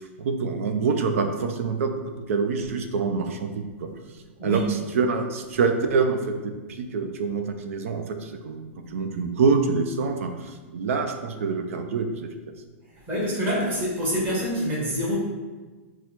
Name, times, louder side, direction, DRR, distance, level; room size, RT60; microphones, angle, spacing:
voice 1, 0.2-1.9 2.3-3.9 4.4-4.6 4.9-12.3, right 4 dB, 70° right, 6 dB, 0.5 m, -26 dB
voice 2, 13.1-15.2, equal, 25° right, -6 dB, 1.5 m, -26 dB
4.1 x 2.3 x 4.4 m, 1.3 s
hypercardioid pair, 155°, 8 cm